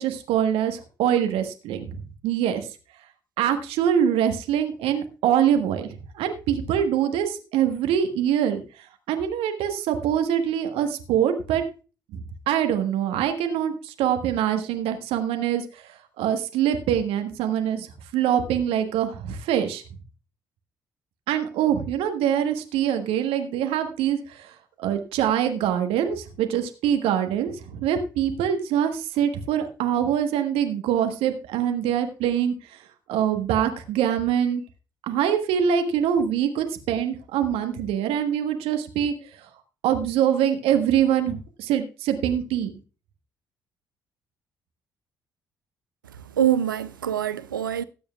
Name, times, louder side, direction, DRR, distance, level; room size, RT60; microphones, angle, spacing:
voice 1, 0.0-2.8 3.4-11.6 12.1-19.8 21.3-34.6 35.1-39.5 39.8-42.7, right 9 dB, 65° right, 1.3 m, -24 dB
voice 2, 46.0-47.8, right 10 dB, 85° right, 0.4 m, -25 dB
19.0 x 8.6 x 2.3 m
figure-of-eight pair, 45°, 11 cm